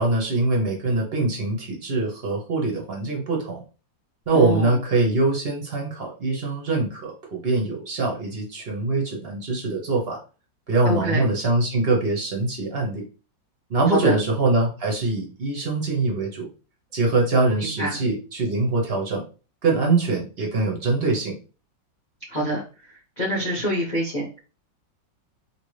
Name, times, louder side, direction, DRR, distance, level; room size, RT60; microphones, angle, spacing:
voice 1, 0.0-3.6 4.3-10.2 10.7-13.0 13.7-16.5 16.9-19.2 19.6-21.3, right 3 dB, 55° right, 0 dB, 0.7 m, -23 dB
voice 2, 4.3-4.7 10.8-11.2 13.9-14.2 17.6-18.0 22.3-22.6 23.2-24.4, right 1 dB, 55° left, -4 dB, 0.4 m, -25 dB
2.9 x 2.6 x 3.1 m, 0.34 s
omnidirectional pair, 2.0 m